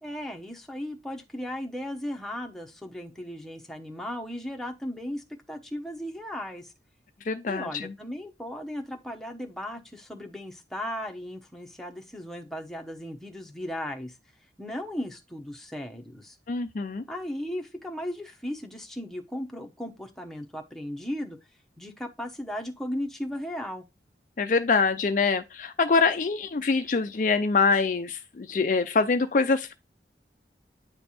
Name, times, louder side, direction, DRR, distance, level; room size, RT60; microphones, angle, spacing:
voice 1, 0.0-6.7 7.5-14.2 14.6-16.4 17.1-21.4 21.8-23.8, left 1 dB, ahead, 0.9 m, -36 dB
voice 2, 7.3-7.9 16.5-17.0 24.4-29.7, left 4 dB, 45° left, 0.4 m, -24 dB
9.5 x 3.3 x 4.2 m
head